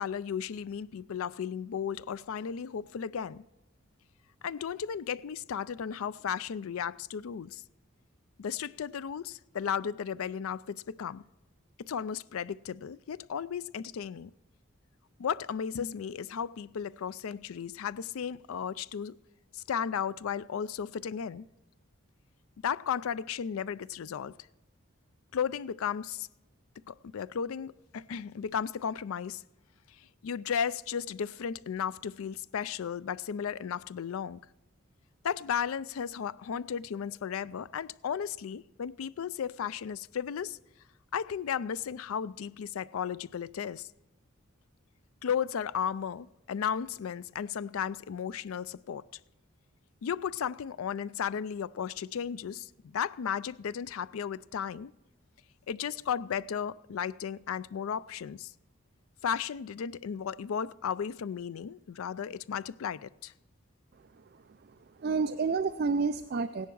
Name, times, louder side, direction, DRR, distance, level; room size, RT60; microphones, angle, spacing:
voice 1, 0.0-3.4 4.4-7.6 8.4-11.2 11.8-14.3 15.2-19.2 19.5-21.4 22.6-24.3 25.3-26.3 26.9-29.4 30.2-34.4 35.2-40.6 41.1-43.9 45.2-49.0 50.0-54.9 55.7-58.5 59.2-63.3, left 7 dB, 90° left, 0.4 m, -34 dB
voice 2, 64.1-66.7, right 4 dB, 45° right, 0.4 m, -31 dB
16.5 x 10.5 x 4.6 m
head